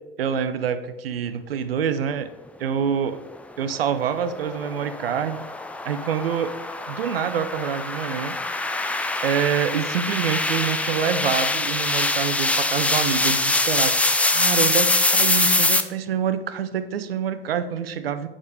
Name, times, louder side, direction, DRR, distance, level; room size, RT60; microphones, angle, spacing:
voice 1, 0.2-2.3 2.6-3.2 3.6-5.4 5.8-6.5 6.9-8.4 9.2-14.0 14.2-18.3, right 8 dB, 75° right, 11 dB, 0.6 m, -26 dB
sound 1, 3.7-15.8, left 2 dB, 5° left, 0.3 m, -24 dB
6.3 x 5.0 x 4.9 m, 1.1 s
figure-of-eight pair, 70°, 29 cm